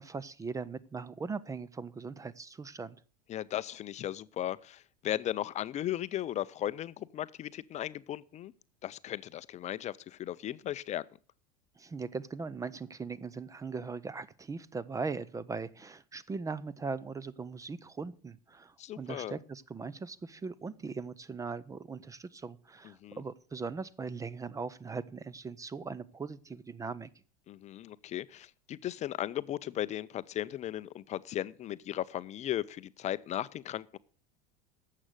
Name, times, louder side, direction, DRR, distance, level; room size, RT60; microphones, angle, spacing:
voice 1, 0.0-3.0 11.8-27.1, right 4 dB, 15° right, 0.5 m, -39 dB
voice 2, 3.3-8.5 8.8-11.0 18.8-19.4 22.8-23.2 27.5-34.0, left 12 dB, 35° left, 0.5 m, -36 dB
11.0 x 7.5 x 6.5 m
supercardioid pair, 105°, 20 cm